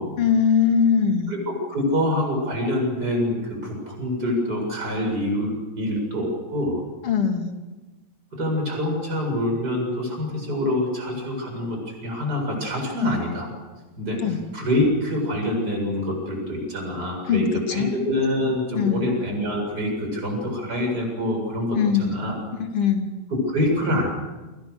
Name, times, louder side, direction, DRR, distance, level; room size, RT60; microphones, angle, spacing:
voice 1, 0.2-1.3 7.0-7.5 14.2-14.4 17.3-17.9 18.7-19.1 21.8-22.2 22.6-23.1, left 7 dB, 50° left, 4 dB, 3.6 m, -21 dB
voice 2, 1.3-6.8 8.3-13.5 14.0-14.2 14.5-22.3 23.3-24.1, left 1 dB, 30° right, 2 dB, 8.2 m, -25 dB
30.0 x 25.5 x 6.7 m, 1.2 s
omnidirectional pair, 3.3 m